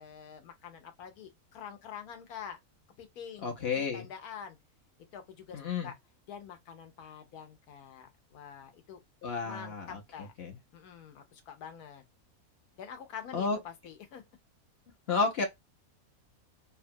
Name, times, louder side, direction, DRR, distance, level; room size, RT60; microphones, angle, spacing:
voice 1, 0.0-2.6 3.0-4.6 5.1-6.0 6.3-9.0 9.4-10.3 10.7-12.0 12.8-14.2, left 8 dB, 75° left, 1.3 m, -46 dB
voice 2, 3.4-4.1 5.5-5.9 9.2-10.0 10.4-10.6 13.3-13.6 15.1-15.4, left 4 dB, 50° left, 0.9 m, -31 dB
2.9 x 2.3 x 2.5 m
omnidirectional pair, 1.6 m